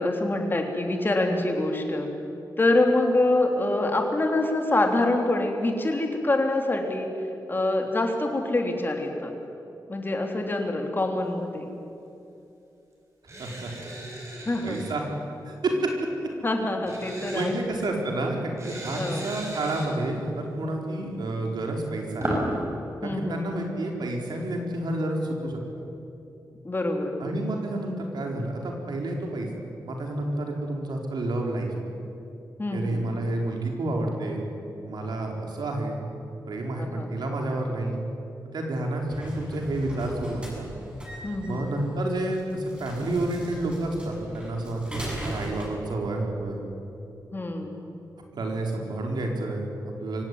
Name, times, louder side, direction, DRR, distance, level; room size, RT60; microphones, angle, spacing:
voice 1, 0.0-2.1 2.6-7.1 7.5-9.3 9.9-11.7 14.4-14.8 16.4-17.9 19.0-19.3 23.0-23.4 26.6-27.1 32.6-33.0 36.8-37.1 41.2-41.6 47.3-47.7, left 2 dB, 30° left, 3 dB, 3.4 m, -25 dB
sound 1, 13.2-14.9 16.8-17.5 18.6-19.9 21.6-22.5, right 1 dB, 40° right, 6.8 m, -35 dB
voice 2, 13.4-13.9 14.6-15.0 15.4-15.9 17.3-22.3 23.0-25.6 27.2-29.5 29.8-31.7 32.7-34.4 34.8-36.0 36.5-38.0 38.5-40.7 41.4-46.6 48.3-50.2, right 2 dB, 80° right, 1 dB, 4.3 m, -30 dB
sound 2, 39.1-45.7, right 1 dB, 15° right, 7.5 m, -39 dB
24.0 x 17.0 x 9.7 m, 2.8 s
wide cardioid pair, 105°, 7 cm